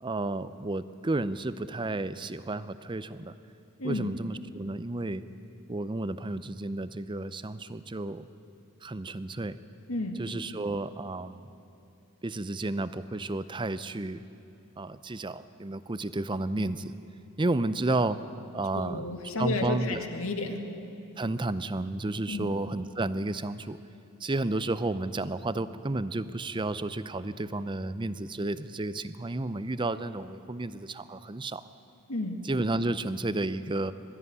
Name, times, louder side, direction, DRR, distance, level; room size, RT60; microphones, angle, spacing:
voice 1, 0.0-3.3 3.8-5.2 5.7-8.3 8.8-9.6 10.2-11.5 12.2-14.2 14.8-16.9 17.4-18.2 18.5-19.0 19.4-20.0 21.2-23.8 24.2-31.7 32.4-33.9, right 2 dB, 20° right, 14 dB, 0.5 m, -32 dB
voice 2, 3.8-4.1 9.9-10.2 18.7-20.6 22.3-22.5 32.1-32.4, left 2 dB, 70° left, 4 dB, 2.0 m, -32 dB
22.0 x 13.5 x 9.6 m, 2.7 s
head